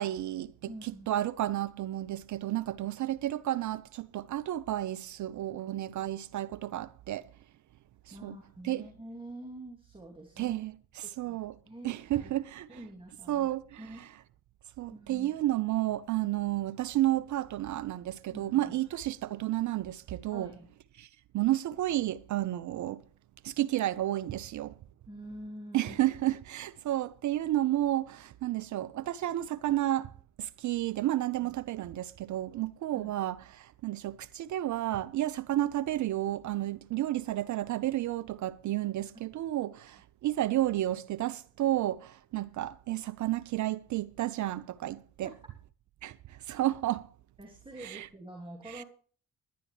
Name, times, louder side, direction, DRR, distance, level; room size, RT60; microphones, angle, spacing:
voice 1, 0.0-0.5 1.1-7.2 8.2-8.3 8.6-8.8 10.4-10.7 11.2-11.5 11.8-12.7 13.3-13.8 14.8-20.5 21.3-23.0 23.4-24.7 25.7-45.3 46.0-47.1 47.8-48.0 48.8-48.9, right 14 dB, 45° right, 0.6 m, -31 dB
voice 2, 0.7-1.1 8.1-10.6 11.0-11.4 11.6-12.3 12.7-13.5 13.8-14.1 14.9-15.6 18.3-18.8 20.3-20.7 25.1-26.0 32.9-33.1 45.2-45.4 47.4-48.8, right 1 dB, 10° right, 3.0 m, -46 dB
20.0 x 11.0 x 3.3 m
figure-of-eight pair, 45°, 41 cm